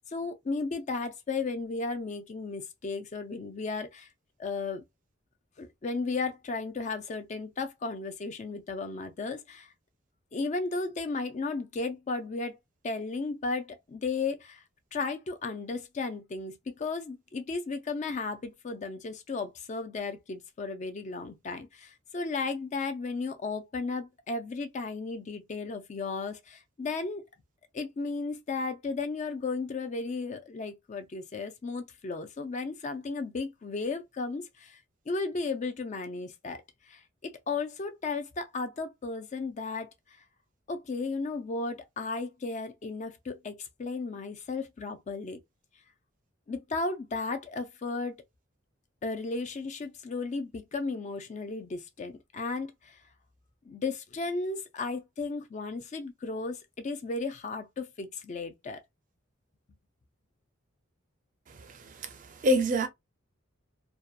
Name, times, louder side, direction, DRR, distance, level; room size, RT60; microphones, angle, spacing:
voice 1, 0.0-4.1 4.4-4.8 5.6-9.7 10.3-12.6 12.8-14.6 14.9-27.2 27.7-34.8 35.1-39.9 40.7-45.4 46.5-48.2 49.0-53.0 53.7-58.8, left 3 dB, 35° left, 0.4 m, -34 dB
voice 2, 61.5-62.9, equal, 40° right, 0.5 m, -28 dB
2.7 x 2.2 x 2.3 m
head